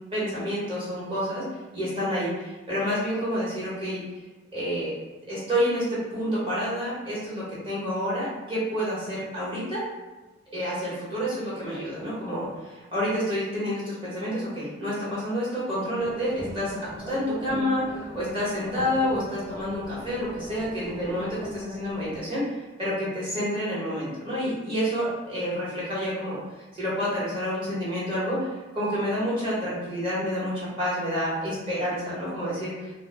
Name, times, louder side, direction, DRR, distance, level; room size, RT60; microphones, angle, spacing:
voice 1, 0.1-1.5 1.7-4.0 4.5-4.9 5.3-9.8 10.5-16.8 17.1-17.9 18.1-26.4 26.8-32.9, equal, 25° right, -9 dB, 1.0 m, -29 dB
sound 1, 16.0-22.2, equal, 70° right, 1.0 m, -40 dB
2.2 x 2.0 x 3.2 m, 1.1 s
head